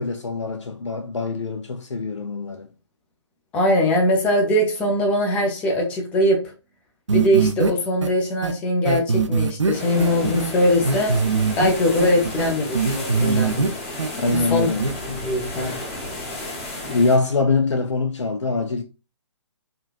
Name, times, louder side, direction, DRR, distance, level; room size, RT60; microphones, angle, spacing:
voice 1, 0.0-2.7 14.2-14.9 16.9-18.8, left 3 dB, 80° left, 0.4 m, -23 dB
voice 2, 3.5-6.4 7.1-11.2 11.6-13.5 14.5-14.7 15.1-15.8, left 1 dB, 10° left, 0.4 m, -21 dB
sound 1, 7.1-7.7 8.0-8.1 8.4-8.5 8.9-10.5 10.8-11.7 12.0-13.7 14.0-14.5 14.8-14.9, right 4 dB, 85° right, 0.4 m, -21 dB
sound 2, 9.7-17.2, left 1 dB, 25° left, 0.8 m, -33 dB
3.7 x 2.2 x 2.4 m
figure-of-eight pair, 135°, 15 cm